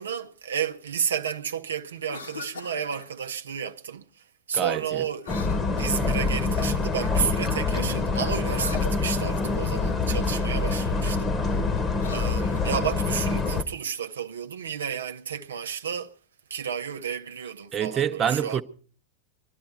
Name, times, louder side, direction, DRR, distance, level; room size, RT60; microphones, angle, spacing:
voice 1, 0.0-4.0 4.5-5.3 5.8-11.6 12.1-16.1 16.5-18.6, right 7 dB, 65° right, 0.7 m, -31 dB
Cough, 2.0-3.1 5.2-6.4 8.4-9.6 11.8-13.1, left 4 dB, 75° left, 2.2 m, -41 dB
voice 2, 4.5-5.1 17.7-18.6, right 8 dB, 25° right, 0.9 m, -26 dB
sound 1, 5.3-13.6, left 3 dB, 20° left, 1.2 m, -26 dB
22.0 x 12.5 x 4.4 m
figure-of-eight pair, 90°, 0 cm